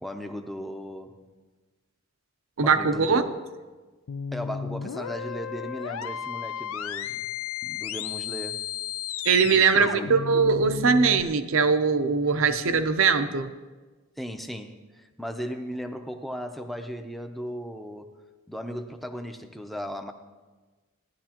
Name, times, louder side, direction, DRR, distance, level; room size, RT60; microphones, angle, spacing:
voice 1, 0.0-1.2 2.6-3.4 4.3-7.3 7.6-8.7 9.4-10.1 14.2-18.2 18.5-20.1, equal, ahead, 5 dB, 0.6 m, -36 dB
voice 2, 2.6-3.2 9.2-13.5, right 5 dB, 70° right, 9 dB, 0.7 m, -21 dB
sound 1, 4.1-11.2, left 8 dB, 85° left, 0.4 m, -34 dB
17.0 x 11.0 x 2.9 m, 1.3 s
head